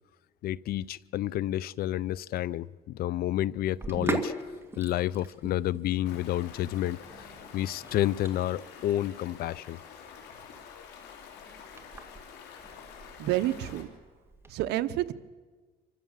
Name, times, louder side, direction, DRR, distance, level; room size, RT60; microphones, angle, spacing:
voice 1, 0.4-4.3 4.8-9.8 10.7-10.8, left 13 dB, 65° left, 0.5 m, -30 dB
Sink (filling or washing), 3.7-14.5, right 2 dB, 15° right, 2.0 m, -40 dB
Stream, 6.1-13.8, left 7 dB, 85° left, 3.2 m, -48 dB
voice 2, 13.2-13.9 14.5-15.1, right 14 dB, 80° right, 0.9 m, -29 dB
25.5 x 15.0 x 7.3 m
cardioid pair, 110°, 17 cm